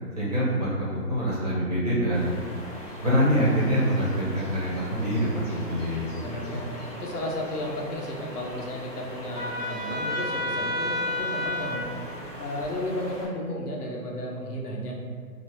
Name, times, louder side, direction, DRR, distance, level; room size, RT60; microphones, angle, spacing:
voice 1, 0.2-2.4 3.0-6.6, equal, 25° right, -8 dB, 0.6 m, -25 dB
sound 1, 2.1-13.3, equal, 50° left, 1.3 m, -41 dB
voice 2, 6.2-11.9 12.4-14.9, left 1 dB, 70° left, -1 dB, 0.8 m, -33 dB
Trumpet, 9.3-11.8, left 1 dB, 15° left, 0.9 m, -30 dB
3.2 x 2.0 x 3.0 m, 2.1 s
hypercardioid pair, 170°, 47 cm